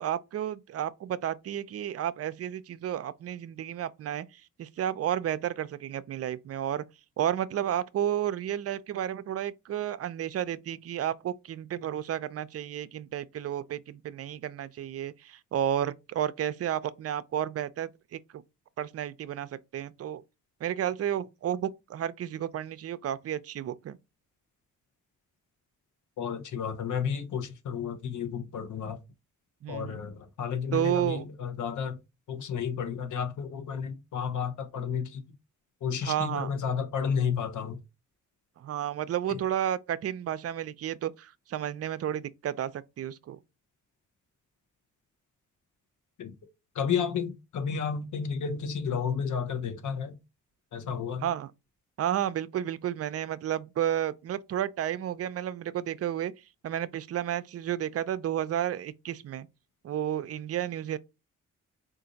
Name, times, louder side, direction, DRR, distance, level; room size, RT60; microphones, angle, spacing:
voice 1, 0.0-6.8 7.2-18.4 18.8-20.2 20.6-24.0 29.6-30.0 30.7-31.3 36.0-36.5 38.6-43.4 51.2-51.5 52.0-56.3 56.6-59.5 59.8-61.0, right 10 dB, 50° right, 0.4 m, -32 dB
voice 2, 26.2-29.0 29.7-32.0 32.3-35.2 35.8-37.8 39.3-39.4 46.2-46.3 46.7-50.2 50.7-51.3, left 7 dB, 70° left, 0.9 m, -32 dB
3.8 x 2.5 x 3.9 m
supercardioid pair, 55°, 32 cm